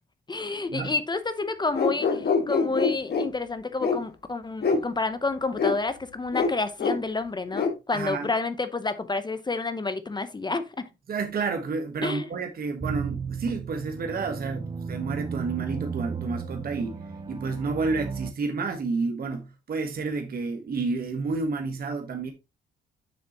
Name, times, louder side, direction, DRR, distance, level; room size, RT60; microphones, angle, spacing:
voice 1, 0.3-10.8 12.0-12.3, left 3 dB, 20° left, 0.8 m, -29 dB
sound 1, 1.7-3.3 3.8-4.0 4.6-4.8 5.6-5.7 6.3-6.5 6.8-7.0 7.5-7.7, left 4 dB, 55° left, 1.9 m, -24 dB
voice 2, 7.9-8.3 11.1-17.0 17.3-22.3, right 4 dB, 50° right, 1.4 m, -30 dB
sound 2, 12.8-18.3, right 6 dB, 25° right, 0.7 m, -35 dB
7.1 x 6.2 x 3.0 m
cardioid pair, 90°, 20 cm